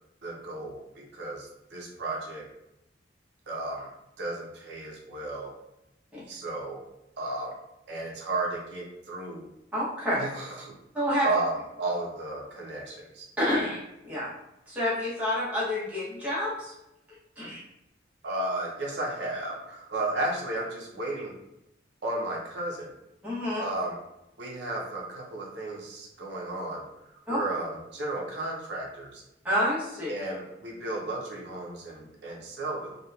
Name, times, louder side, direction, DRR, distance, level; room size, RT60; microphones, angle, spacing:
voice 1, 0.2-2.4 3.5-3.9 4.2-5.5 6.3-6.8 7.2-7.5 7.9-9.5 10.2-10.7 11.2-13.2 18.2-21.3 22.0-22.9 23.6-24.0 24.4-26.8 27.3-29.2 30.1-33.0, right 2 dB, 75° right, -2 dB, 0.5 m, -33 dB
voice 2, 9.7-10.3 10.9-11.3 13.4-13.8 14.0-14.3 14.7-16.7 17.4-17.6 23.2-23.6 27.3-27.4 29.4-30.1, left 1 dB, 10° right, -9 dB, 0.7 m, -28 dB
2.8 x 2.1 x 2.2 m, 0.88 s
head